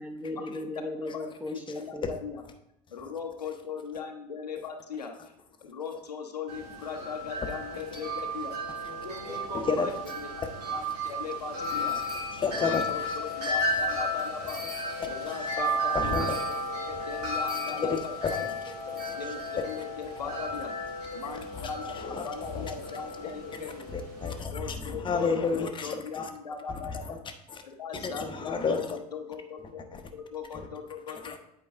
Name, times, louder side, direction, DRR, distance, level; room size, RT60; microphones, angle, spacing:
voice 1, 0.0-2.1, left 2 dB, 5° right, 4 dB, 1.1 m, -37 dB
voice 2, 1.1-2.4 2.9-5.1 5.6-8.5 9.0-10.3 10.7-12.2 12.6-16.4 16.9-18.5 19.2-20.7 21.1-23.9 24.5-27.0 27.6-29.8 30.1-31.2, left 6 dB, 80° left, 4 dB, 0.9 m, -39 dB
Wind chime, 6.5-24.4, equal, 75° right, 2.0 m, -34 dB
voice 3, 9.3-9.9 10.7-10.8 11.7-11.9 12.3-13.1 14.6-14.7 15.9-16.6 17.7-18.3 18.6-19.2 21.2-21.3 21.5-21.7 22.0-22.7 23.9-26.3 26.8-27.2 27.5-27.6 27.9-29.0 29.9-30.0 30.5-30.7 31.2-31.4, left 5 dB, 25° left, 6 dB, 0.9 m, -32 dB
8.5 x 4.8 x 3.5 m, 0.79 s
figure-of-eight pair, 70°, 20 cm